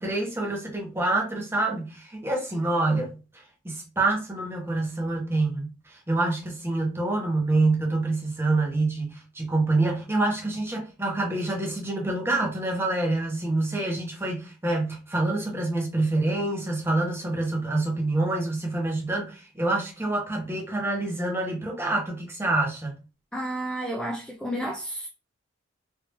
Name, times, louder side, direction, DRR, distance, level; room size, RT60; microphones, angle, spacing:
voice 1, 0.0-3.1 3.6-22.9, right 2 dB, 10° right, 1.0 m, -26 dB
voice 2, 23.3-25.1, right 1 dB, 5° left, 0.4 m, -31 dB
3.3 x 2.7 x 2.9 m
head